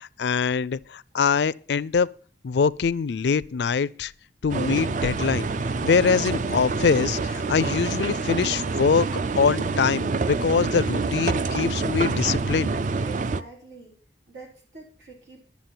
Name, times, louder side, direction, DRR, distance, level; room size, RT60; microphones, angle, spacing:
voice 1, 0.0-2.1 2.4-4.1 4.4-5.5 5.8-12.7, left 5 dB, 70° left, 0.4 m, -23 dB
sound 1, 4.5-13.4, right 4 dB, 45° right, 0.4 m, -27 dB
voice 2, 13.0-14.0 14.3-15.5, right 4 dB, 90° right, 4.8 m, -45 dB
11.5 x 7.2 x 6.0 m
head